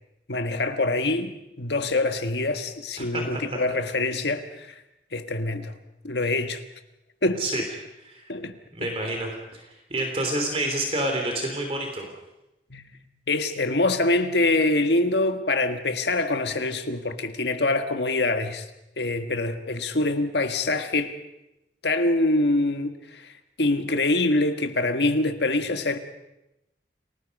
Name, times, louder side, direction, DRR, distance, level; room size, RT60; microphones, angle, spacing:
voice 1, 0.3-4.8 5.1-5.7 6.0-6.6 7.2-7.4 8.3-8.9 12.7-12.9 13.3-18.7 19.0-21.1 21.8-23.3 23.6-26.0, left 2 dB, 70° left, 1.5 m, -25 dB
voice 2, 3.0-3.6 7.4-7.6 8.0-8.3 8.7-9.6 9.9-12.1, right 1 dB, 30° right, 3.1 m, -28 dB
29.5 x 19.5 x 5.4 m
head